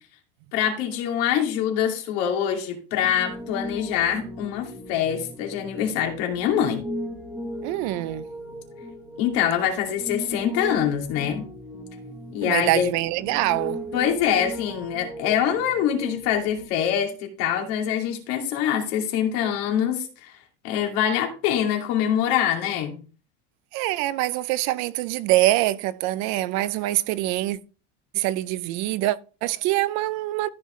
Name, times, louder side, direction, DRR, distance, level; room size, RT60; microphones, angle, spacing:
voice 1, 0.5-6.8 9.2-11.4 12.3-12.9 13.9-20.4 20.6-23.0, left 9 dB, 65° left, 2.5 m, -24 dB
Piano, 3.0-16.7, equal, 5° right, 1.6 m, -37 dB
voice 2, 7.6-8.2 12.4-13.8 23.7-27.6 28.1-30.5, right 16 dB, 50° right, 0.5 m, -24 dB
14.0 x 5.6 x 3.1 m
cardioid pair, 180°, 36 cm